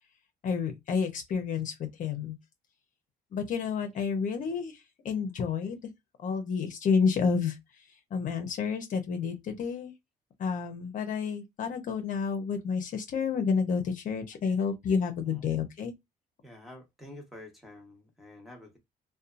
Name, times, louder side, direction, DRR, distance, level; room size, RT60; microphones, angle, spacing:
voice 1, 0.4-2.4 3.3-5.8 6.2-7.9 8.1-9.9 10.4-15.9, left 5 dB, 50° left, 0.7 m, -30 dB
voice 2, 16.4-18.8, left 1 dB, ahead, 1.1 m, -49 dB
2.7 x 2.2 x 2.5 m
cardioid pair, 110°, 17 cm